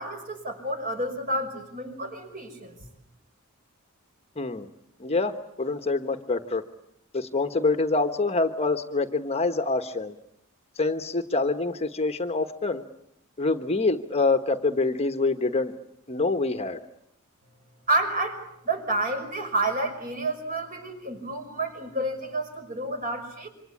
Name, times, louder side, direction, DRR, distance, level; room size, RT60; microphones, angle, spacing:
voice 1, 0.0-2.8 17.9-23.5, right 2 dB, 40° right, 6 dB, 5.7 m, -29 dB
voice 2, 4.4-4.7 5.0-6.6 7.1-10.1 10.8-12.8 13.4-15.7 16.1-16.8, left 3 dB, 30° left, 8 dB, 1.2 m, -26 dB
27.0 x 25.5 x 8.6 m, 0.75 s
head